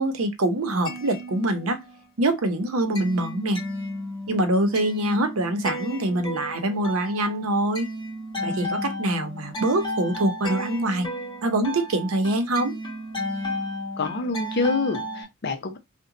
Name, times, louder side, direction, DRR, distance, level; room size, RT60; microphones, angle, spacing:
voice 1, 0.0-1.8 2.2-3.6 4.3-7.9 8.4-11.1 11.4-12.7, right 1 dB, 80° right, 0.7 m, -24 dB
sound 1, 0.6-2.1 2.4-15.2, equal, 20° left, 1.2 m, -34 dB
voice 2, 14.0-15.8, left 3 dB, 50° left, 0.6 m, -26 dB
2.8 x 2.2 x 3.7 m
head